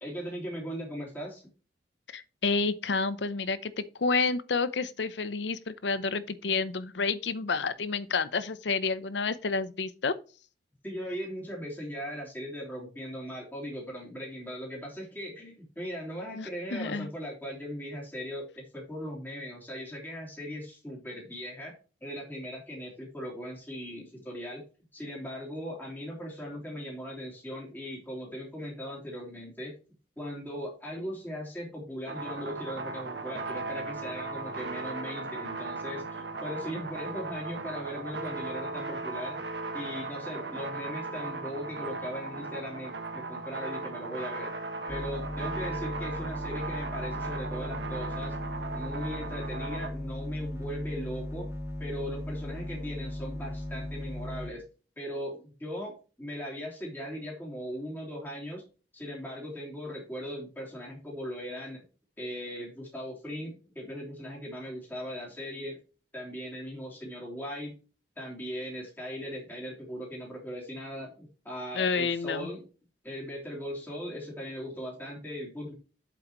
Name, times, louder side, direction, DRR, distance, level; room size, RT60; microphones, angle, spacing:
voice 1, 0.0-1.4 10.8-21.7 22.0-24.6 24.9-29.7 30.2-39.4 39.7-44.5 44.9-48.3 48.7-51.5 51.8-54.6 55.0-58.6 58.9-61.8 62.2-65.8 66.1-67.7 68.2-72.6 73.0-75.7, equal, 10° left, 3.3 m, -39 dB
voice 2, 2.1-10.1 16.4-17.1 71.7-72.5, left 4 dB, 80° left, 0.7 m, -30 dB
sound 1, 32.1-49.9, right 3 dB, 75° right, 1.5 m, -37 dB
sound 2, 44.9-54.5, left 1 dB, 15° right, 2.3 m, -37 dB
7.9 x 7.8 x 3.0 m
head